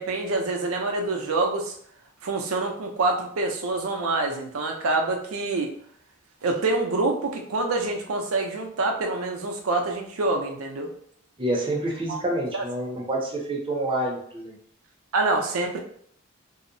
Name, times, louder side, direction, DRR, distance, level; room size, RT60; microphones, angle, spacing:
voice 1, 0.0-1.7 2.2-5.7 6.4-10.9 12.1-12.2 12.5-12.6 15.1-15.8, right 3 dB, 80° right, 3 dB, 0.5 m, -26 dB
voice 2, 11.4-14.6, right 1 dB, 25° right, -1 dB, 0.6 m, -28 dB
2.7 x 2.0 x 2.6 m, 0.63 s
head